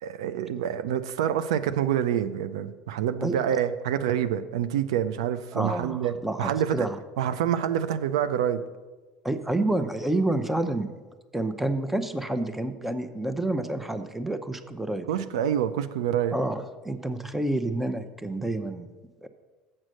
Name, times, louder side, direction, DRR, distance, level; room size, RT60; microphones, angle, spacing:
voice 1, 0.0-6.9 7.2-8.6 15.1-16.4, right 9 dB, 85° right, 12 dB, 0.4 m, -27 dB
voice 2, 5.5-7.0 9.2-11.0 11.3-15.1 16.3-18.9 19.2-19.3, right 1 dB, 10° right, 10 dB, 0.7 m, -29 dB
7.4 x 6.4 x 6.3 m, 1.3 s
supercardioid pair, 90°, 3 cm